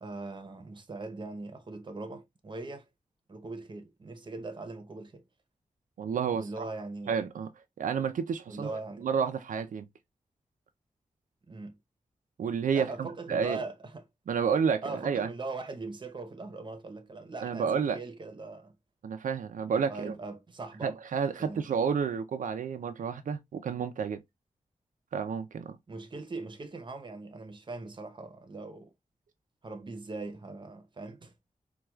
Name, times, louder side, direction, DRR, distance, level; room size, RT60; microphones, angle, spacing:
voice 1, 0.0-2.8 3.3-5.2 6.3-7.1 8.5-9.1 11.5-11.8 12.7-14.0 14.8-18.7 19.8-21.0 21.4-21.6 25.9-28.9 29.6-31.3, right 3 dB, 35° right, 0.7 m, -40 dB
voice 2, 6.0-6.7 7.1-7.5 7.8-9.9 12.4-13.6 14.3-15.3 17.4-18.0 19.0-20.2 20.8-24.2 25.1-25.8, right 6 dB, 85° right, 0.4 m, -30 dB
4.3 x 2.3 x 2.3 m
wide cardioid pair, 110°, 13 cm